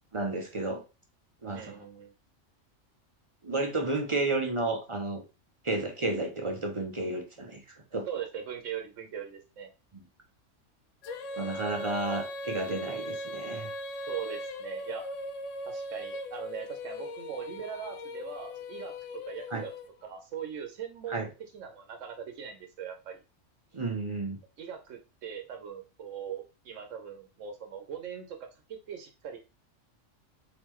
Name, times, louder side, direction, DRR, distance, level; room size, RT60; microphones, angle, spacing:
voice 1, 0.1-0.8 1.4-1.8 3.4-5.2 5.6-7.6 7.9-8.1 11.4-13.7 19.5-19.6 21.1-21.3 23.7-24.4, right 2 dB, 40° right, 2 dB, 0.5 m, -31 dB
voice 2, 1.5-2.1 8.1-9.7 14.1-15.0 15.6-18.9 19.2-19.7 20.0-21.3 21.5-23.2 24.6-28.4 28.7-29.4, right 8 dB, 80° right, 4 dB, 1.0 m, -40 dB
Female singing, 11.0-20.2, left 1 dB, 80° left, 0.9 m, -39 dB
3.7 x 3.6 x 3.0 m, 0.31 s
omnidirectional pair, 1.3 m